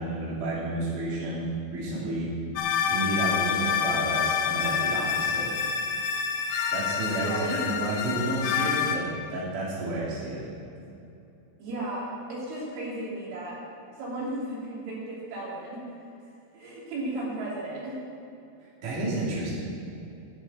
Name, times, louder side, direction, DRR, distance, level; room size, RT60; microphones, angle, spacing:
voice 1, 0.0-1.5 1.7-2.3 2.9-5.5 6.7-10.4 18.8-19.5, right 2 dB, 45° right, -7 dB, 4.0 m, -31 dB
sound 1, 2.6-9.0, left 7 dB, 75° left, 2.6 m, -27 dB
voice 2, 7.1-7.8 11.6-13.6 14.0-15.8 16.5-18.0, right 1 dB, 85° right, -6 dB, 5.5 m, -34 dB
10.5 x 7.1 x 8.9 m, 2.7 s
omnidirectional pair, 5.5 m